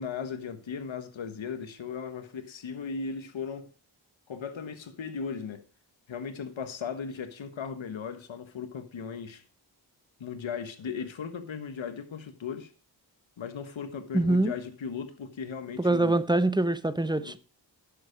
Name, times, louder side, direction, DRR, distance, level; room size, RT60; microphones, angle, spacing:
voice 1, 0.0-3.7 4.3-5.6 6.1-9.4 10.2-12.7 13.4-16.2 17.2-17.4, left 6 dB, 80° left, 1.4 m, -37 dB
voice 2, 14.1-14.5 15.8-17.4, right 2 dB, 10° right, 0.9 m, -24 dB
10.0 x 7.0 x 5.1 m
cardioid pair, 40°, 46 cm